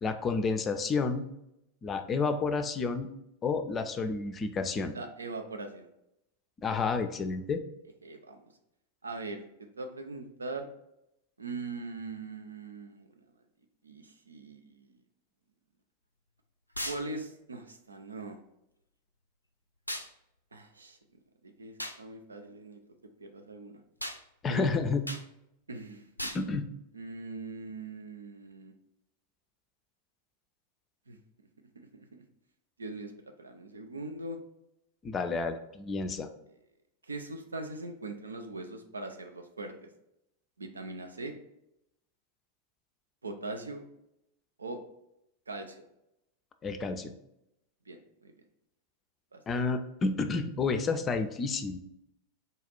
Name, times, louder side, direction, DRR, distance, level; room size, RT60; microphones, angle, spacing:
voice 1, 0.0-1.3 1.8-3.1 3.4-4.9 6.6-7.6 24.4-25.0 26.3-26.7 35.0-36.3 46.6-47.1 49.5-51.8, left 4 dB, 25° left, 8 dB, 0.4 m, -30 dB
voice 2, 4.9-5.9 8.0-8.4 9.0-9.5 9.8-10.7 11.4-13.1 13.8-14.9 16.8-18.4 20.5-21.0 21.4-22.8 23.2-23.8 24.5-24.7 25.7-26.3 26.9-28.7 31.1-31.2 31.8-32.2 32.8-33.1 33.4-34.4 37.1-39.9 40.6-41.3 43.2-43.8 44.6-44.8 45.5-45.8 47.9-48.0 48.2-48.3 49.3-49.4, right 3 dB, 75° right, 5 dB, 0.5 m, -41 dB
sound 1, 16.8-17.0 19.9-20.1 21.8-22.0 24.0-24.2 25.1-25.3 26.2-26.4, equal, 90° left, 0.3 m, -36 dB
4.0 x 2.4 x 4.0 m, 0.83 s
figure-of-eight pair, 90°, 0 cm